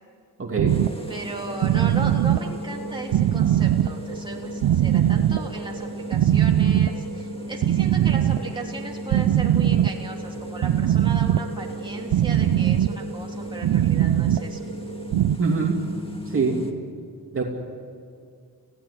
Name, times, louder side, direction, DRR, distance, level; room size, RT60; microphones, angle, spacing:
voice 1, 0.4-0.8 15.4-15.8 16.3-16.6 17.3-17.4, right 4 dB, 35° right, 0 dB, 2.8 m, -23 dB
sound 1, 0.6-15.4, right 11 dB, 80° right, 0.6 m, -22 dB
sound 2, 0.7-16.7, left 3 dB, 15° left, 2.0 m, -37 dB
voice 2, 1.1-14.6, right 2 dB, 10° right, -1 dB, 3.1 m, -36 dB
28.5 x 16.5 x 8.5 m, 2.2 s
cardioid pair, 100°, 38 cm